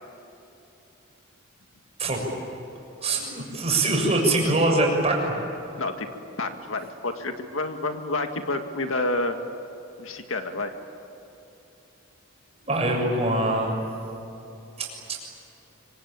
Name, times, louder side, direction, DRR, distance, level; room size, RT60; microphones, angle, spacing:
voice 1, 3.0-5.3 12.7-13.8 14.8-15.2, right 2 dB, 30° right, 0 dB, 6.8 m, -23 dB
voice 2, 6.4-9.4 10.0-10.7, left 2 dB, 70° left, 6 dB, 2.0 m, -29 dB
26.0 x 25.0 x 8.9 m, 2.9 s
head